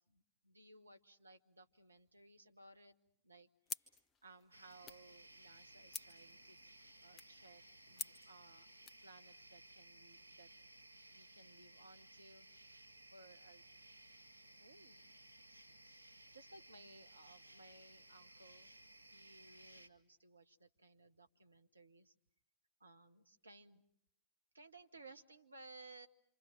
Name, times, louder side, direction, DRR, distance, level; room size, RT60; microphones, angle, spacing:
voice 1, 0.1-2.9 3.2-3.9 4.2-6.6 7.0-8.7 9.0-10.5 11.1-12.5 13.1-13.6 14.6-15.0 15.7-18.7 19.0-22.1 22.8-23.8 24.5-26.1, right 2 dB, 80° right, 9 dB, 1.1 m, -61 dB
sound 1, 3.7-9.1, left 5 dB, 25° left, 1.2 m, -52 dB
sound 2, 4.5-19.9, right 1 dB, 90° left, 1.6 m, -60 dB
27.0 x 26.5 x 7.3 m, 0.65 s
figure-of-eight pair, 90°, 0 cm